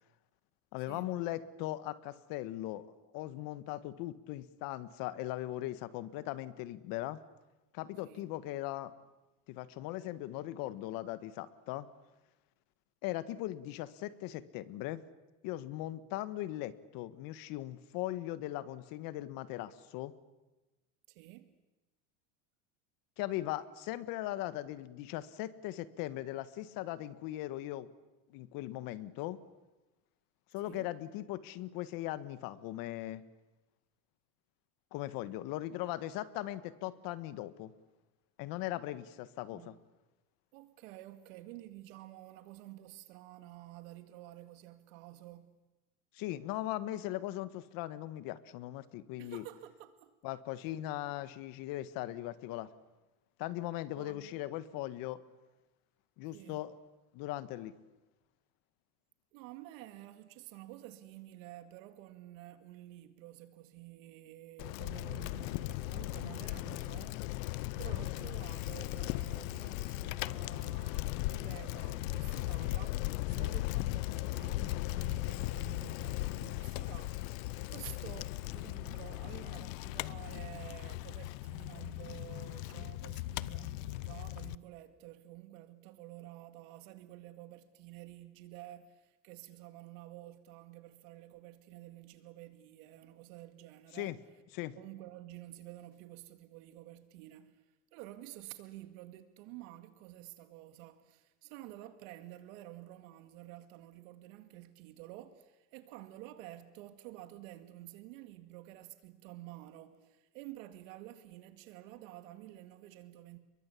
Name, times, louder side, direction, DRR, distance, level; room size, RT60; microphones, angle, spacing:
voice 1, 0.7-2.9 3.1-7.2 7.7-8.9 9.5-11.9 13.0-15.0 15.4-20.1 23.2-27.9 28.3-29.4 30.5-33.2 34.9-37.7 38.4-39.7 46.1-49.4 50.2-52.7 53.4-55.2 56.2-56.7 57.1-57.8 93.9-94.2 94.5-94.7, left 15 dB, 55° left, 1.6 m, -39 dB
voice 2, 21.1-21.5 30.6-30.9 39.5-39.8 40.5-45.5 49.2-50.2 54.0-54.4 56.3-56.6 59.3-77.4 77.7-94.2 94.8-113.4, right 15 dB, 70° right, 2.2 m, -51 dB
Bicycle, 64.6-84.5, left 19 dB, 75° left, 0.8 m, -37 dB
29.5 x 22.5 x 8.5 m
supercardioid pair, 145°, 41 cm